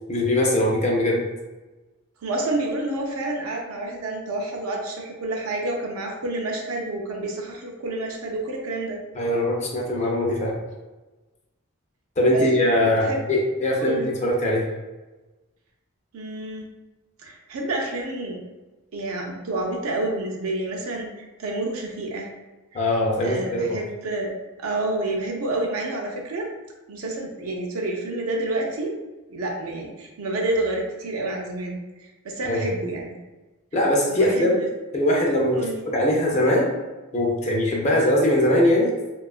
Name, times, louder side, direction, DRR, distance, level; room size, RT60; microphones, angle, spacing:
voice 1, 0.1-1.2 9.1-10.5 12.2-14.6 22.7-23.8 32.5-32.6 33.7-34.6 34.9-35.6 35.9-36.7 37.1-39.1, left 1 dB, 35° left, -2 dB, 0.4 m, -21 dB
voice 2, 2.2-9.0 12.2-12.4 12.8-13.2 13.8-14.1 16.1-16.7 17.2-18.4 18.9-22.3 22.7-22.8 23.2-24.3 24.6-26.5 26.9-28.9 29.3-33.1 34.1-34.5 35.5-35.8, right 2 dB, 80° right, 0 dB, 0.4 m, -29 dB
2.8 x 2.3 x 2.3 m, 1.2 s
head